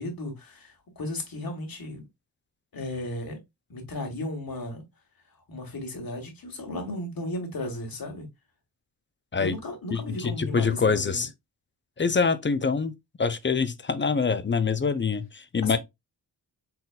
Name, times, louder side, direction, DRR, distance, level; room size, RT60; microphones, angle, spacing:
voice 1, 0.0-2.0 2.7-3.4 3.7-4.8 5.5-8.3 9.4-11.2 15.6-15.8, left 1 dB, 50° left, 1.8 m, -35 dB
voice 2, 9.9-11.3 12.0-12.9 13.2-15.8, left 5 dB, 25° left, 0.6 m, -25 dB
4.2 x 3.9 x 2.3 m
cardioid pair, 65°, 45 cm